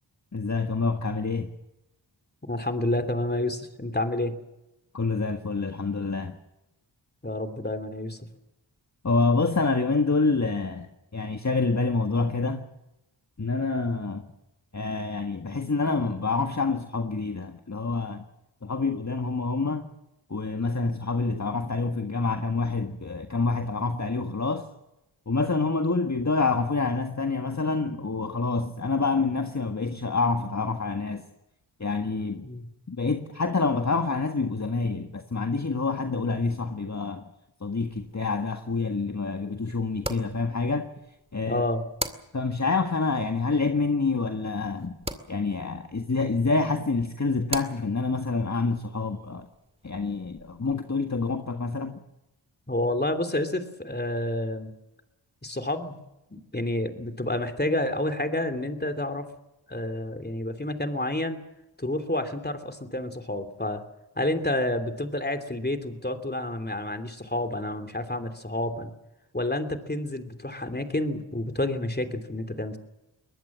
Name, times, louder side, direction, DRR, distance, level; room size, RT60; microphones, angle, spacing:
voice 1, 0.3-1.5 4.9-6.4 9.0-12.6 13.4-14.3 14.7-18.2 18.6-19.9 20.3-24.7 25.3-31.2 31.8-32.5 32.9-37.2 37.6-40.9 41.3-41.6 42.3-44.9 45.3-49.5 49.8-52.0, left 3 dB, 35° left, 1.7 m, -27 dB
voice 2, 2.5-4.4 7.2-8.3 32.4-32.7 41.5-41.8 52.7-54.7 55.4-56.0 56.3-59.3 59.7-61.4 61.8-63.8 64.2-68.9 69.3-72.8, left 1 dB, 20° left, 3.1 m, -29 dB
sound 1, 37.9-50.7, right 1 dB, 10° right, 2.3 m, -42 dB
23.0 x 19.5 x 7.5 m
cardioid pair, 45°, 46 cm